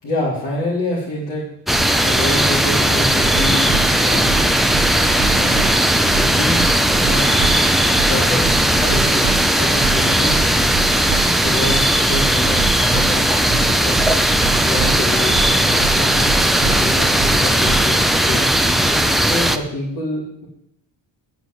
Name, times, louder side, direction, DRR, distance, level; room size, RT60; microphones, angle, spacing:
voice 1, 0.0-1.4 2.0-3.7 4.0-4.3 5.3-5.6 6.1-6.7 7.0-7.3 8.1-8.4 8.8-10.4 11.4-14.0 14.6-16.3 16.6-18.4 19.2-20.5, left 1 dB, 60° left, -9 dB, 4.2 m, -26 dB
sound 1, 1.7-19.6, right 1 dB, ahead, 0.4 m, -17 dB
sound 2, 3.2-17.9, right 6 dB, 60° right, 1.1 m, -26 dB
9.6 x 6.9 x 8.0 m, 0.76 s
cardioid pair, 170°, 47 cm